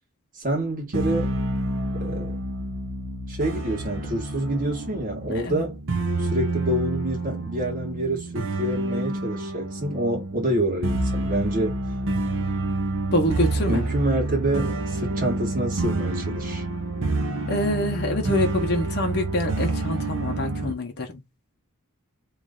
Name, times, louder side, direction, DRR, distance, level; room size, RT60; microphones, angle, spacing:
voice 1, 0.3-1.3 2.0-2.3 3.3-5.8 6.2-11.8 13.7-16.6, right 1 dB, 40° right, 1.6 m, -27 dB
sound 1, 0.9-20.7, right 2 dB, 60° right, 0.7 m, -28 dB
voice 2, 5.3-5.7 13.1-13.8 17.5-21.2, left 1 dB, 50° left, 0.9 m, -26 dB
3.2 x 2.6 x 3.7 m
head